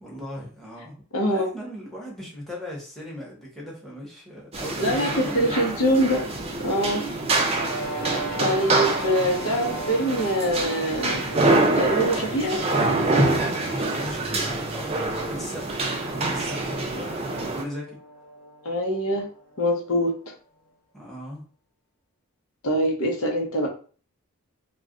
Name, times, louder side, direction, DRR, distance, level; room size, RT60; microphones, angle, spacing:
voice 1, 0.0-0.9 1.3-5.7 7.6-7.8 13.8-18.0 20.9-21.4, left 1 dB, ahead, -4 dB, 0.9 m, -38 dB
voice 2, 1.1-1.5 4.8-5.1 5.3-6.2 6.6-7.0 8.4-11.2 11.8-12.6 18.6-19.3 19.6-20.1 22.6-23.7, equal, 70° left, 0 dB, 0.7 m, -24 dB
sound 1, 4.5-17.6, right 2 dB, 30° right, 0.4 m, -26 dB
sound 2, 7.5-20.2, right 1 dB, 40° left, 0.8 m, -40 dB
2.3 x 2.2 x 3.6 m, 0.40 s
head